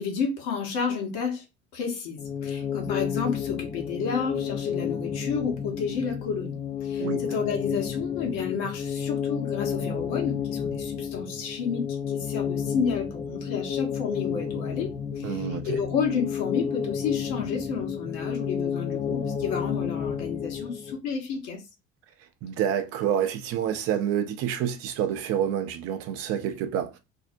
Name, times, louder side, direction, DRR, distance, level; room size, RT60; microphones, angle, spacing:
voice 1, 0.0-1.4 1.7-6.6 6.8-21.6, left 6 dB, 65° left, 1.0 m, -31 dB
sound 1, 2.2-21.0, left 8 dB, 25° left, 0.4 m, -31 dB
voice 2, 15.2-15.8 22.4-26.9, right 9 dB, 45° right, 0.5 m, -28 dB
2.6 x 2.0 x 2.5 m
hypercardioid pair, 70°, 34 cm